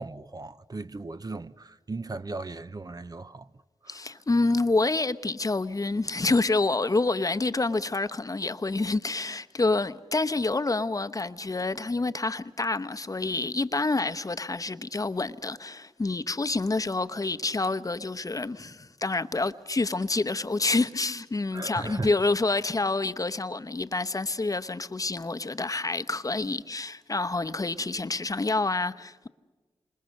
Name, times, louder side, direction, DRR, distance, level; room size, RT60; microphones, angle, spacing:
voice 1, 0.0-3.5 3.8-4.2 21.5-22.2, right 3 dB, 35° right, 0.8 m, -37 dB
voice 2, 3.9-29.3, left 3 dB, 35° left, 0.9 m, -28 dB
27.5 x 27.0 x 6.6 m
cardioid pair, 55°, 11 cm